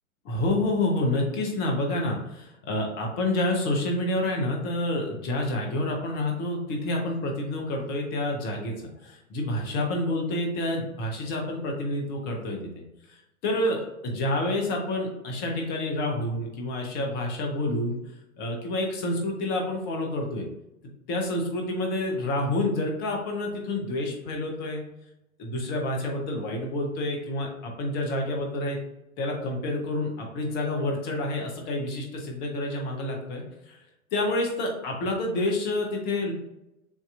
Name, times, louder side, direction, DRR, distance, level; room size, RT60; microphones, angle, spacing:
voice 1, 0.2-8.7 9.0-12.7 13.1-18.0 18.4-20.5 21.1-24.8 25.4-28.8 29.2-33.8 34.1-36.3, left 1 dB, 25° left, 1 dB, 0.9 m, -28 dB
7.0 x 2.9 x 2.5 m, 0.90 s
figure-of-eight pair, 105°, 42 cm